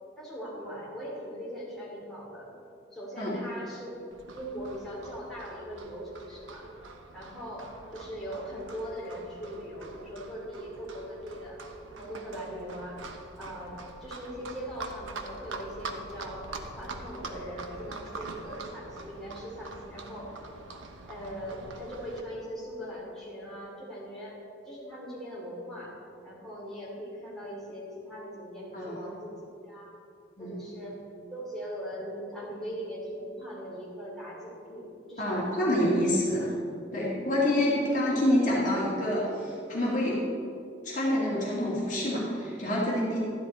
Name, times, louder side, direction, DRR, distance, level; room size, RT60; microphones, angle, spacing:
voice 1, 0.2-2.5 2.9-3.9 4.3-6.7 7.1-11.6 11.9-13.0 13.4-16.5 16.7-20.3 21.1-24.4 24.6-25.9 26.2-29.3 29.7-29.9 30.4-31.0 31.3-35.9 37.6-37.8, equal, ahead, -8 dB, 3.0 m, -40 dB
Livestock farm animals working animals, 4.1-22.2, right 3 dB, 90° right, 0.9 m, -44 dB
voice 2, 35.2-36.5 36.9-40.2 40.8-43.3, left 1 dB, 40° left, -6 dB, 2.4 m, -27 dB
13.0 x 10.5 x 4.4 m, 2.6 s
head